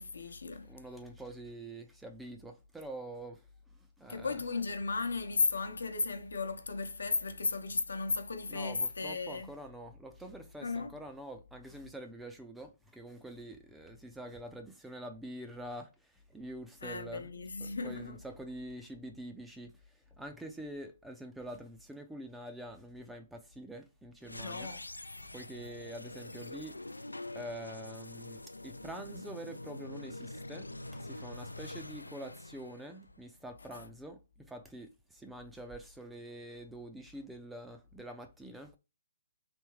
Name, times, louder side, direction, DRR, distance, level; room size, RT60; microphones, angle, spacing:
voice 1, 0.0-0.7 4.1-9.5 10.6-10.9 16.8-18.2 24.4-24.8 33.7-33.8, left 4 dB, 70° left, 0.8 m, -35 dB
voice 2, 0.6-3.5 3.7-4.4 8.5-17.3 17.6-24.7 25.3-26.8 27.3-38.8, right 1 dB, 5° right, 0.4 m, -46 dB
sound 1, 24.2-33.4, left 2 dB, 85° left, 0.3 m, -45 dB
3.5 x 2.9 x 2.9 m
figure-of-eight pair, 135°, 0 cm